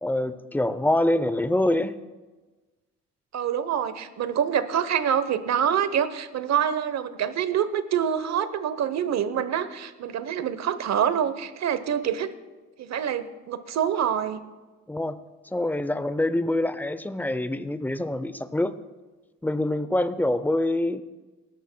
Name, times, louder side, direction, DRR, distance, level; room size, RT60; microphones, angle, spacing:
voice 1, 0.0-2.0 14.9-15.2 15.5-18.7 19.4-21.0, left 1 dB, 5° left, 13 dB, 0.6 m, -25 dB
voice 2, 3.3-12.3 12.8-14.4, right 9 dB, 60° right, 13 dB, 0.9 m, -26 dB
19.0 x 13.0 x 2.2 m, 1.2 s
cardioid pair, 90°, 30 cm